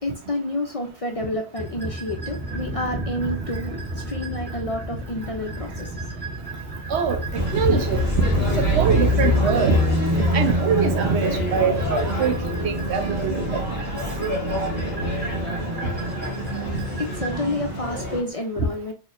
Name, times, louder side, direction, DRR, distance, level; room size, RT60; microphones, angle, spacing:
voice 1, 0.0-6.1 16.0-16.1 17.0-18.9, left 1 dB, 45° left, 0.5 m, -29 dB
sound 1, 1.5-17.4, right 1 dB, 10° right, 0.6 m, -33 dB
voice 2, 6.9-9.8 10.2-12.4 12.6-13.4 15.8-15.9 16.7-16.8 18.6-18.7, right 5 dB, 85° right, 1.0 m, -23 dB
sound 2, 7.3-18.2, equal, 65° right, 1.6 m, -25 dB
4.2 x 2.8 x 2.4 m
omnidirectional pair, 1.1 m